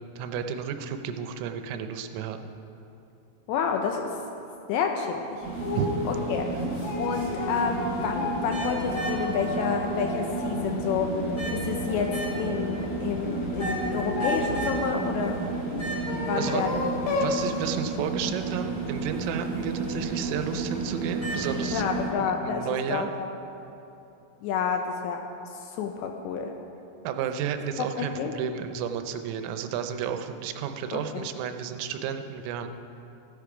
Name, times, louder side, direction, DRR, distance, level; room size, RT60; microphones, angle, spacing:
voice 1, 0.0-2.6 5.7-5.9 16.3-16.6 17.2-21.8 22.2-23.1 27.0-32.7, right 8 dB, 85° right, 8 dB, 3.3 m, -32 dB
voice 2, 3.5-4.2 4.7-5.4 6.1-6.5 7.0-15.4 16.2-16.8 21.7-23.3 24.4-25.2 25.5-26.5 27.8-28.3 30.9-31.3, left 6 dB, 80° left, 4 dB, 2.7 m, -29 dB
sound 1, 5.4-22.1, right 3 dB, 25° left, 2.9 m, -32 dB
sound 2, 5.6-6.0 6.5-10.6 11.0-12.6 13.2-14.9 15.7-17.4, left 3 dB, 65° left, 3.1 m, -33 dB
15.0 x 10.5 x 5.0 m, 2.8 s
omnidirectional pair, 5.7 m